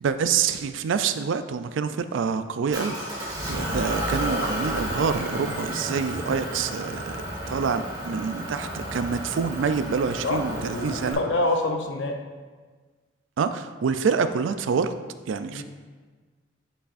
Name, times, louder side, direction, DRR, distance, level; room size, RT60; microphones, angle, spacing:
voice 1, 0.0-3.0 3.5-11.2 13.4-14.9 15.3-15.6, right 6 dB, 90° right, 10 dB, 0.4 m, -26 dB
Motor vehicle (road) / Engine, 2.7-11.1, right 1 dB, 20° right, 1.7 m, -32 dB
voice 2, 10.2-12.2 15.5-15.6, left 2 dB, 70° left, 3 dB, 0.7 m, -26 dB
8.6 x 5.5 x 2.5 m, 1.4 s
head